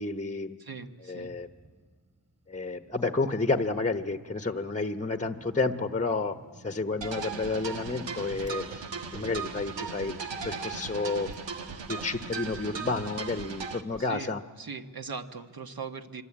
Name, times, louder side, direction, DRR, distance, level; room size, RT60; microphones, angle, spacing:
voice 1, 0.0-0.6 1.0-1.5 2.5-6.4 6.6-8.8 9.1-10.2 10.4-11.3 11.9-14.4, left 3 dB, 15° left, 9 dB, 1.0 m, -30 dB
voice 2, 0.6-1.3 14.0-14.3 14.6-16.2, right 5 dB, 55° right, 7 dB, 1.5 m, -40 dB
Male speech man speaking / Motorcycle / Idling, 1.2-10.1, right 1 dB, 35° right, 4.3 m, -55 dB
sound 1, 7.0-13.8, right 5 dB, 80° right, 1.5 m, -37 dB
Whoosh swoosh swish, 8.4-8.9 9.1-9.6 10.0-10.5 10.9-11.0 11.3-11.5 11.8-14.0, right 2 dB, 15° right, 1.9 m, -51 dB
26.5 x 24.5 x 8.7 m, 1.5 s
wide cardioid pair, 105°, 43 cm